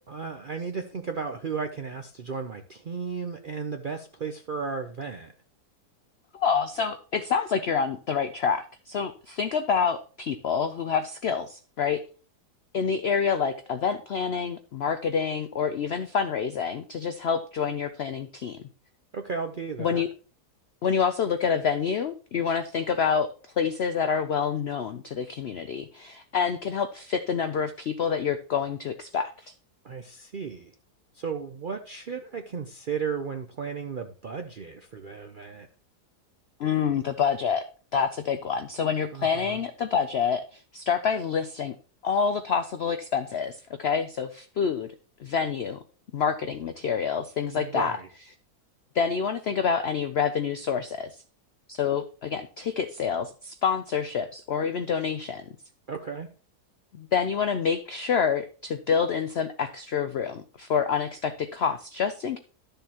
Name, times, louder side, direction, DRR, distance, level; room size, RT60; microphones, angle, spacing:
voice 1, 0.1-5.3 19.1-20.0 29.8-30.7 31.1-35.7 39.1-39.6 47.5-48.1 55.9-56.3, right 5 dB, 60° right, 6 dB, 0.5 m, -34 dB
voice 2, 6.3-12.0 12.7-18.6 19.8-20.1 20.8-23.3 23.6-29.5 36.6-37.6 37.9-41.7 42.0-44.9 45.2-45.8 46.1-48.0 48.9-51.2 51.7-55.5 57.0-62.4, left 6 dB, 75° left, 10 dB, 0.5 m, -27 dB
12.5 x 6.8 x 2.9 m, 0.38 s
omnidirectional pair, 1.7 m